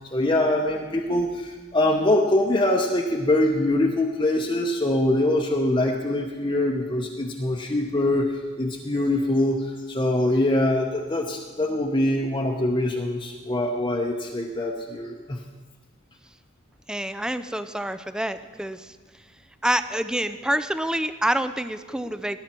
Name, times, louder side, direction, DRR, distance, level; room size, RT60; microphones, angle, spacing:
voice 1, 0.0-8.3 8.6-15.4, left 1 dB, 25° left, -1 dB, 0.8 m, -23 dB
voice 2, 16.9-19.0 19.6-22.4, right 1 dB, 5° right, 11 dB, 0.4 m, -27 dB
19.5 x 11.0 x 4.4 m, 1.3 s
head